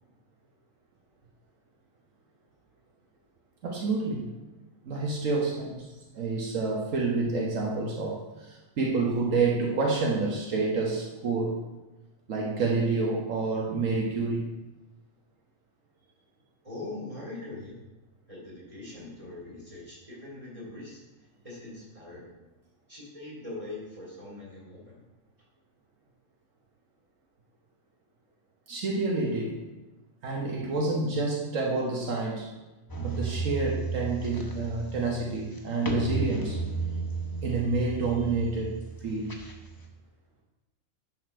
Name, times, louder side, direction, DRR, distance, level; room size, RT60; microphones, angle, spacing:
voice 1, 3.6-4.2 4.8-5.9 6.1-11.6 12.3-14.5 28.7-29.6 30.2-32.5 33.0-36.6 37.4-39.4, right 3 dB, 75° right, -2 dB, 1.4 m, -28 dB
voice 2, 16.6-17.7 18.3-21.0 21.4-22.3 22.9-25.0, left 2 dB, 25° right, -6 dB, 3.2 m, -42 dB
sound 1, 32.9-39.9, right 4 dB, 20° left, 0.8 m, -34 dB
10.5 x 4.3 x 4.5 m, 1.1 s
omnidirectional pair, 1.4 m